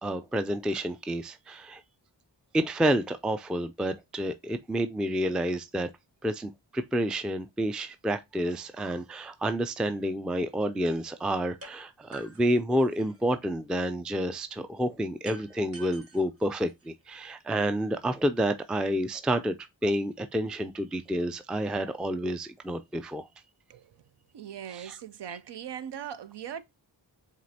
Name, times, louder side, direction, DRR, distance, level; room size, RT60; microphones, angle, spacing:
voice 1, 0.0-1.8 2.5-5.9 6.2-19.6 19.8-23.3 24.7-25.0, right 1 dB, ahead, 0.3 m, -29 dB
sound 1, 11.6-11.7 12.1-13.3 15.2-17.2, right 2 dB, 30° right, 1.0 m, -48 dB
voice 2, 24.3-26.6, right 9 dB, 65° right, 0.6 m, -40 dB
7.5 x 2.5 x 2.7 m
cardioid pair, 50°, 44 cm